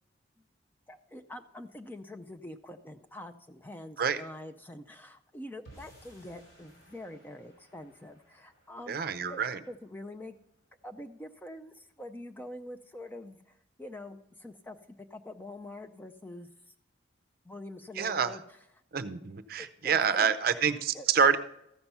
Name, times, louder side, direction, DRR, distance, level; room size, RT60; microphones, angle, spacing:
voice 1, 0.9-9.0 9.3-9.4 9.7-10.4 10.8-16.5 17.4-18.4 19.6-20.6 20.9-21.1, left 1 dB, 10° left, 7 dB, 0.4 m, -45 dB
sound 1, 5.6-12.0, right 1 dB, 85° left, 4.4 m, -60 dB
voice 2, 8.9-9.6 18.0-18.4 18.9-21.4, right 6 dB, 50° right, 10 dB, 0.5 m, -27 dB
14.0 x 5.8 x 5.4 m, 0.78 s
head